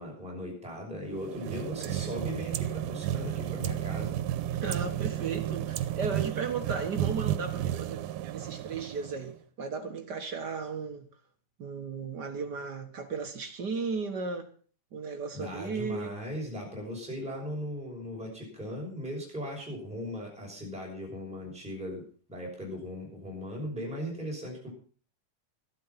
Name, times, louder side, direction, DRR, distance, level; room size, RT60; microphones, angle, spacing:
voice 1, 0.0-4.2 15.3-22.0 22.3-24.7, equal, ahead, 5.8 m, -38 dB
sound 1, 1.1-9.4, right 12 dB, 80° right, 2.3 m, -32 dB
voice 2, 4.6-11.1 11.6-14.5 14.9-16.1, right 5 dB, 50° right, 1.3 m, -35 dB
13.0 x 12.0 x 5.7 m
omnidirectional pair, 3.5 m